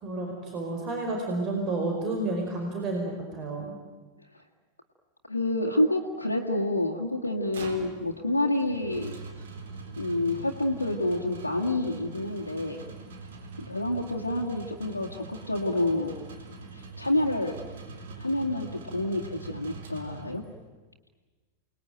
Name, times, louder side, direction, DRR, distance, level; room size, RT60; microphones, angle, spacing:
voice 1, 0.0-3.7, right 2 dB, 35° right, 2 dB, 5.0 m, -31 dB
voice 2, 5.3-9.1 10.0-12.8 13.7-16.2 16.7-17.6 18.2-20.4, left 1 dB, 85° left, 0 dB, 2.1 m, -28 dB
sound 1, 7.2-20.7, right 4 dB, 60° right, 3.7 m, -43 dB
29.0 x 20.5 x 9.3 m, 1.3 s
figure-of-eight pair, 90°, 0 cm